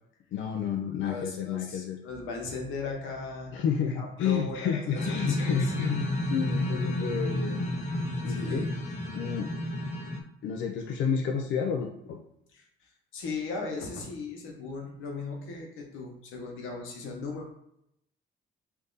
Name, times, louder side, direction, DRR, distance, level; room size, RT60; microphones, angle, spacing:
voice 1, 0.3-2.0 3.5-7.6 8.2-8.7 9.1-9.5 10.4-12.2, left 7 dB, 70° left, 3 dB, 0.5 m, -30 dB
voice 2, 1.0-3.6 3.9-5.5 8.3-8.7 12.5-12.7 13.1-17.5, left 3 dB, 90° left, 1 dB, 1.1 m, -37 dB
sound 1, 5.0-10.2, left 1 dB, 35° left, 0.8 m, -31 dB
3.5 x 2.7 x 3.9 m, 0.77 s
cardioid pair, 90°, 20 cm